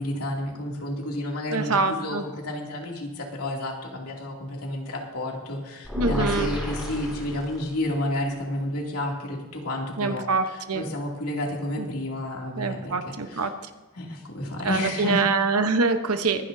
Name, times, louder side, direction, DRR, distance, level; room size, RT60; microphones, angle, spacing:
voice 1, 0.0-13.5 13.9-15.2, left 1 dB, 80° left, -1 dB, 2.7 m, -31 dB
voice 2, 1.5-2.2 6.0-6.5 10.0-10.8 12.6-13.5 14.6-16.5, right 4 dB, 75° right, 8 dB, 1.0 m, -25 dB
sound 1, 5.8-8.0, left 1 dB, ahead, 5.1 m, -32 dB
24.5 x 10.0 x 2.7 m, 1.2 s
head